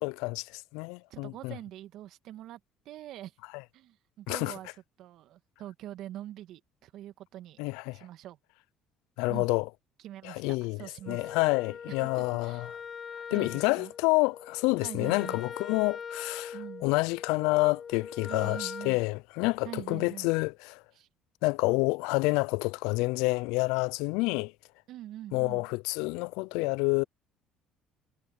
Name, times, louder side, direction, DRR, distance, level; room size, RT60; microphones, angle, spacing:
voice 1, 0.0-1.5 3.5-3.6 4.3-4.5 7.6-8.0 9.2-9.7 10.2-10.8 11.1-12.7 13.3-20.8 21.4-24.5 25.3-27.0, left 25 dB, 80° left, 0.4 m, -28 dB
voice 2, 1.1-2.6 2.8-3.3 3.7-4.7 5.0-7.6 7.9-8.4 9.3-9.5 10.0-11.3 11.9-12.7 13.3-13.9 14.8-15.4 16.5-16.9 18.3-19.0 19.6-20.3 20.9-21.1 24.9-25.6, right 13 dB, 70° right, 1.7 m, -44 dB
Wind instrument woodwind instrument, 11.0-19.0, left 7 dB, 45° left, 3.7 m, -42 dB
supercardioid pair, 70°, 0 cm